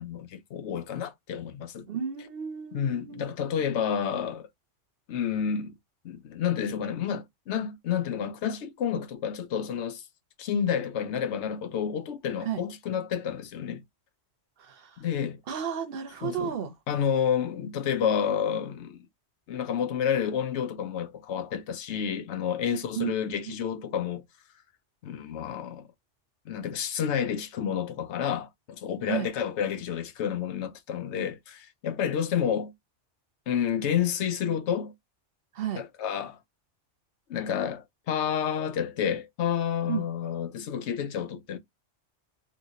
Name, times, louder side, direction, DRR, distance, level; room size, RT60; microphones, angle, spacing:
voice 1, 0.0-1.9 2.7-4.5 5.1-5.7 6.0-10.0 10.4-13.8 15.0-15.4 16.2-16.5 16.9-19.0 19.5-24.2 25.0-25.9 26.5-32.7 33.5-34.9 35.8-36.4 37.3-41.6, left 8 dB, 70° left, 0.9 m, -30 dB
voice 2, 1.9-3.3 12.4-12.6 14.6-14.9 15.5-16.7 23.0-23.1 23.5-23.6 29.1-29.3 35.5-35.8 39.9-40.0, right 8 dB, 55° right, 0.9 m, -32 dB
3.0 x 2.9 x 2.7 m
omnidirectional pair, 1.2 m